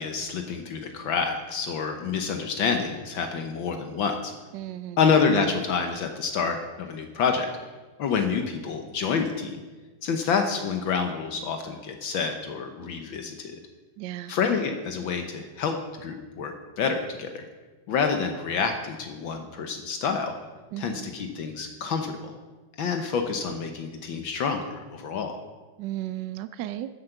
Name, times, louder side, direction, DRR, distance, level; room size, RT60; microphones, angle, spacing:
voice 1, 0.0-4.3 5.0-7.5 8.0-9.6 10.0-13.6 14.3-17.4 17.9-20.3 20.8-22.3 22.8-25.3, left 5 dB, 70° left, 5 dB, 1.6 m, -28 dB
voice 2, 4.5-5.0 14.0-14.3 20.7-21.1 25.8-26.9, right 13 dB, 75° right, 12 dB, 1.0 m, -34 dB
14.5 x 7.8 x 5.9 m, 1.3 s
omnidirectional pair, 2.3 m